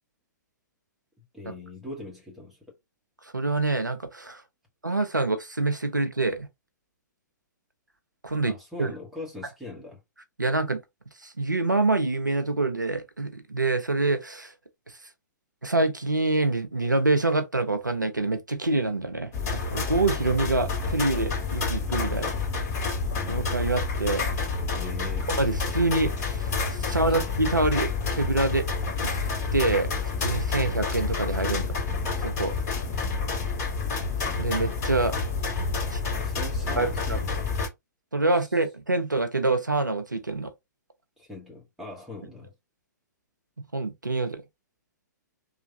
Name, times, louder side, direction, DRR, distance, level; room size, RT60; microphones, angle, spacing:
voice 1, 1.3-2.6 8.4-10.0 24.7-25.3 36.2-37.5 41.2-42.5, left 2 dB, ahead, 1.2 m, -41 dB
voice 2, 3.2-4.4 4.8-6.5 8.2-8.9 10.4-10.8 11.2-14.5 15.6-22.3 23.3-24.3 25.3-28.7 29.0-29.1 29.5-29.9 30.2-31.8 32.2-32.5 34.4-35.1 35.9-36.0 36.8-37.2 38.1-40.5 43.7-44.4, right 2 dB, 90° right, 0.5 m, -26 dB
sound 1, 19.3-37.7, left 4 dB, 25° left, 1.9 m, -29 dB
3.2 x 2.3 x 2.7 m
figure-of-eight pair, 115°, 10 cm